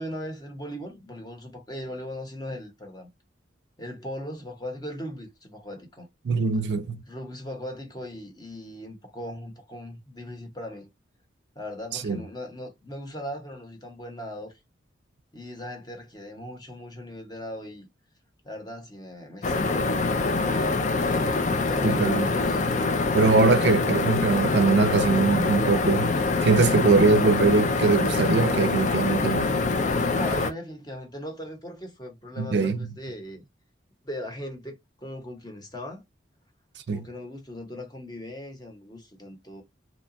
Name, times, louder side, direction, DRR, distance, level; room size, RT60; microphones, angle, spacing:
voice 1, 0.0-3.1 3.8-6.1 7.1-10.9 11.5-14.5 15.3-17.9 18.4-19.9 20.2-22.6 30.1-33.5 34.0-36.0 36.9-39.6, equal, 20° left, 0.8 m, -38 dB
voice 2, 6.2-7.0 11.9-12.2 21.8-22.3 23.1-26.1 26.4-29.5 32.4-32.8 36.9-37.1, right 4 dB, 60° right, 0.4 m, -22 dB
sound 1, 19.4-30.5, left 3 dB, 40° left, 0.4 m, -25 dB
2.8 x 2.2 x 2.5 m
head